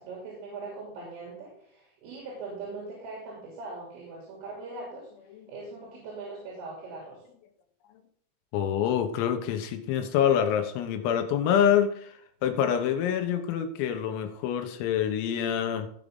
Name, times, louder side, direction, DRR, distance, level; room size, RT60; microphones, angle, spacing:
voice 1, 0.0-5.1 5.5-7.2, right 3 dB, 75° right, -3 dB, 5.7 m, -41 dB
voice 2, 8.5-12.1 12.4-15.9, left 9 dB, 80° left, 7 dB, 3.8 m, -26 dB
18.0 x 6.6 x 3.7 m, 0.65 s
omnidirectional pair, 6.0 m